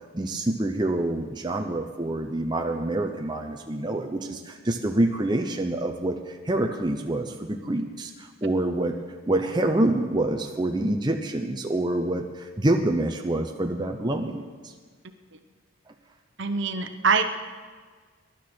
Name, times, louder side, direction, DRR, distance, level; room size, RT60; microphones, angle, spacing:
voice 1, 0.1-8.9 9.3-14.7, right 1 dB, 20° right, 3 dB, 0.7 m, -26 dB
voice 2, 16.4-17.2, right 5 dB, 55° right, 8 dB, 1.0 m, -24 dB
21.5 x 11.5 x 4.5 m, 1.5 s
head